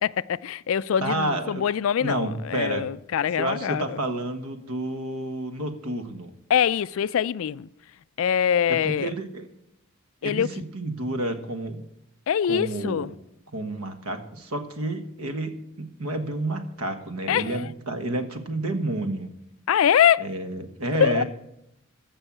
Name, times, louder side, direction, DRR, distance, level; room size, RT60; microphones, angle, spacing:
voice 1, 0.0-4.0 6.5-7.7 8.2-9.1 10.2-10.5 12.3-13.1 17.3-17.7 19.7-20.3 21.0-21.2, left 8 dB, 65° left, 0.3 m, -23 dB
voice 2, 1.0-1.6 2.0-2.9 3.4-6.3 8.7-9.5 10.2-11.8 12.5-13.1 13.5-19.3 20.2-21.2, right 1 dB, 90° right, 1.4 m, -30 dB
14.5 x 5.5 x 7.3 m
head